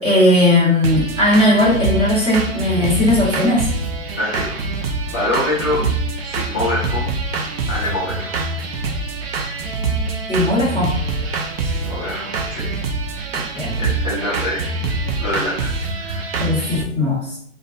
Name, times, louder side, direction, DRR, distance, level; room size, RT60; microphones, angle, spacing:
voice 1, 0.0-3.7 10.3-11.0 13.5-13.7 16.4-17.4, left 1 dB, 15° right, -9 dB, 1.3 m, -17 dB
sound 1, 0.8-16.8, right 3 dB, 50° right, 0.5 m, -25 dB
voice 2, 4.1-4.6 5.1-5.8 6.2-7.0 7.7-8.4 11.6-12.8 13.8-16.3, left 1 dB, 15° left, -9 dB, 0.4 m, -25 dB
2.4 x 2.3 x 2.6 m, 0.63 s
hypercardioid pair, 135°, 40 cm